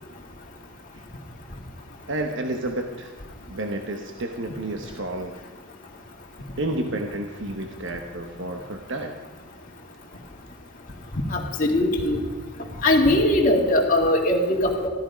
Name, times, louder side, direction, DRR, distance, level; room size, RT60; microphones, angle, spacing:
voice 1, 2.1-3.1 3.5-5.4 6.6-9.1, right 1 dB, 55° right, 4 dB, 1.0 m, -30 dB
voice 2, 11.3-12.2 12.8-14.9, left 1 dB, 40° left, -1 dB, 2.0 m, -20 dB
15.0 x 14.0 x 5.1 m, 1.4 s
head